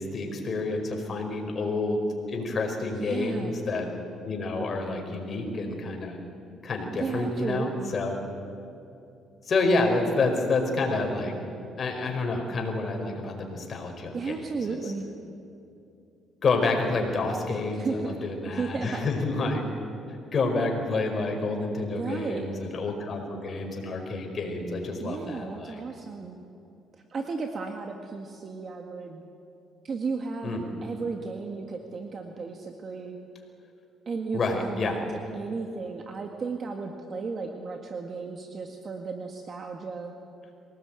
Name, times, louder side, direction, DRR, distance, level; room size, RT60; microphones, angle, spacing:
voice 1, 0.0-2.0 2.3-3.9 4.2-6.2 6.6-8.2 9.5-11.3 11.8-14.3 14.7-14.8 16.4-19.6 20.3-25.8 30.4-30.6 34.3-34.9, left 3 dB, 40° left, 3 dB, 4.9 m, -28 dB
voice 2, 3.0-3.5 7.0-8.0 14.1-15.0 17.7-19.1 21.9-22.5 25.0-26.4 26.9-29.2 29.8-33.2 34.1-40.1, right 4 dB, 45° right, 4 dB, 1.9 m, -34 dB
24.0 x 18.5 x 9.0 m, 2.7 s
cardioid pair, 100°, 0 cm